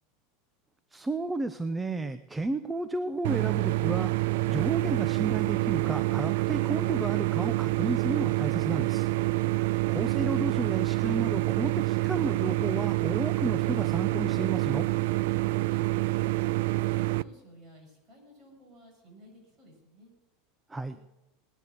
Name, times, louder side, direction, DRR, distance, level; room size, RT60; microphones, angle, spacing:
voice 1, 0.9-4.1 4.5-9.1 9.9-14.9 20.7-21.0, right 3 dB, 10° right, 12 dB, 0.6 m, -32 dB
sound 1, 3.2-17.2, right 21 dB, 75° right, 0.5 m, -27 dB
voice 2, 15.3-16.3 16.7-20.1 20.9-21.0, equal, 25° right, -1 dB, 7.6 m, -55 dB
19.0 x 11.0 x 6.7 m, 0.99 s
supercardioid pair, 155°, 0 cm